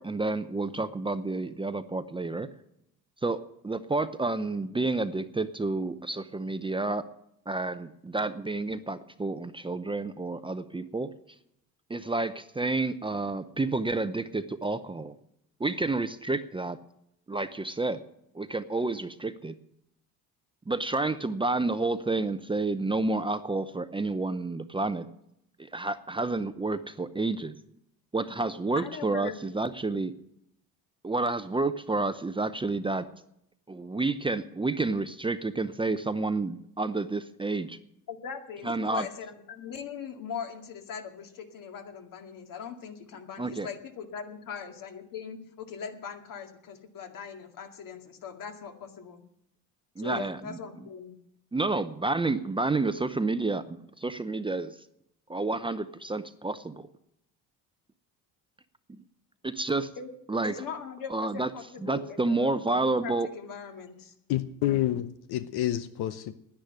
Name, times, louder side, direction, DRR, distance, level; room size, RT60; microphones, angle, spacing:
voice 1, 0.0-2.5 3.2-7.0 7.5-11.1 11.9-15.1 15.6-16.8 17.3-18.0 18.3-19.5 20.7-25.1 25.6-27.6 28.1-30.1 31.0-33.1 33.7-37.8 38.6-39.1 43.4-43.7 50.0-50.8 51.5-54.8 55.3-56.9 58.9-59.0 59.4-59.9 60.3-60.5 61.1-61.5 61.8-63.3, right 3 dB, 15° right, 11 dB, 0.7 m, -30 dB
voice 2, 28.8-29.4 38.1-49.2 50.0-51.2 60.0-60.1 60.4-64.1, left 7 dB, 55° left, 5 dB, 2.2 m, -40 dB
voice 3, 64.3-66.3, left 13 dB, 75° left, 11 dB, 0.9 m, -28 dB
10.5 x 9.9 x 10.0 m, 0.77 s
cardioid pair, 100°, 39 cm